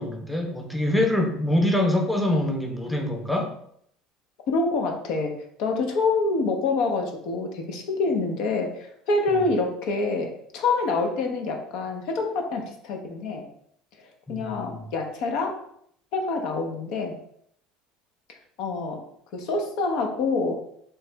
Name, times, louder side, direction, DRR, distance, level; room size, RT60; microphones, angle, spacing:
voice 1, 0.0-3.5 9.3-9.5 14.3-14.9, left 1 dB, 5° left, 2 dB, 0.6 m, -25 dB
voice 2, 4.5-5.3 5.6-13.4 14.0-15.6 16.1-17.2 18.6-19.0 19.3-20.6, left 3 dB, 70° left, 3 dB, 0.7 m, -26 dB
3.1 x 2.8 x 3.3 m, 0.68 s
supercardioid pair, 110°, 0 cm